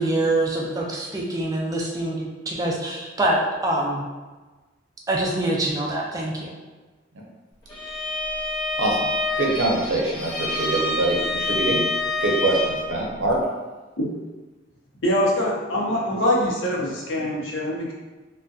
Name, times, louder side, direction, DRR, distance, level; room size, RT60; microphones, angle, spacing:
voice 1, 0.0-4.0 5.1-6.5, right 1 dB, 20° right, -3 dB, 0.4 m, -25 dB
Bowed string instrument, 7.7-13.0, left 2 dB, 25° left, 0.6 m, -27 dB
voice 2, 9.4-11.9 12.2-13.4, right 2 dB, 85° right, -2 dB, 0.6 m, -24 dB
voice 3, 15.0-17.9, left 1 dB, 80° left, -3 dB, 0.6 m, -23 dB
2.5 x 2.1 x 2.3 m, 1.2 s
head